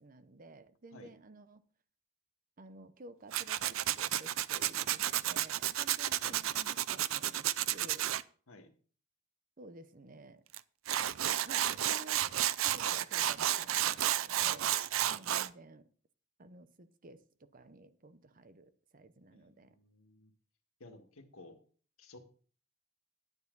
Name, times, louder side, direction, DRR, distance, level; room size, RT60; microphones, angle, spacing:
voice 1, 0.0-1.6 2.6-8.1 9.6-10.4 11.3-12.3 12.6-14.8 15.1-15.9 16.4-19.8, right 2 dB, 40° right, 0.8 m, -54 dB
Tools, 3.3-8.2 10.5-10.6 10.9-15.5, right 12 dB, 75° right, 0.5 m, -32 dB
voice 2, 14.9-15.2 19.3-20.3 20.8-21.6 22.0-22.2, left 2 dB, 90° left, 1.7 m, -55 dB
10.5 x 9.7 x 3.9 m
head